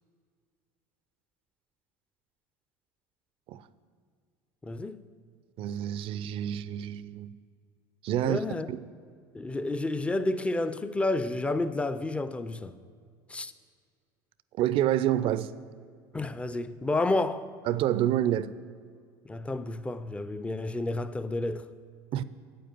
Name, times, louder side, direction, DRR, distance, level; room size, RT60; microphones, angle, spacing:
voice 1, 4.6-5.0 8.2-8.7 9.3-12.7 13.3-13.5 16.1-17.5 19.3-21.6, left 2 dB, 10° left, 0.4 m, -30 dB
voice 2, 5.6-7.3 8.0-8.4 8.7-8.8 14.6-15.5 17.7-18.5 22.1-22.2, right 12 dB, 50° right, 0.4 m, -27 dB
8.6 x 7.8 x 6.7 m
hypercardioid pair, 85°, 11 cm